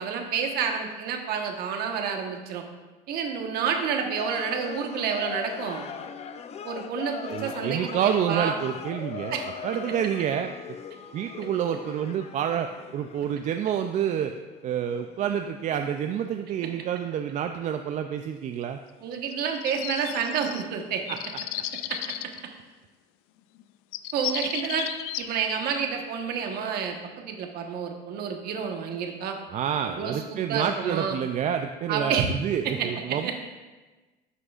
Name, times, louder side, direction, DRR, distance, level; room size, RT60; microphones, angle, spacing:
voice 1, 0.0-2.6 3.1-5.9 6.6-8.5 9.3-9.5 19.0-21.0 21.9-22.0 24.1-24.9 25.2-29.4 29.8-31.2 31.9-32.3 32.6-33.3, right 6 dB, 60° right, 3 dB, 1.2 m, -29 dB
sound 1, 4.2-17.6 17.8-18.0, left 7 dB, 35° left, 0.5 m, -40 dB
voice 2, 7.3-9.3 9.6-10.5 11.1-14.3 14.6-18.8 21.1-21.2 29.5-33.3, right 9 dB, 45° right, 7 dB, 0.4 m, -28 dB
sound 2, 19.1-20.7 21.1-22.4 23.6-23.7 23.9-25.3, left 13 dB, 85° left, 0.4 m, -34 dB
11.0 x 6.2 x 2.4 m, 1.2 s
supercardioid pair, 105°, 18 cm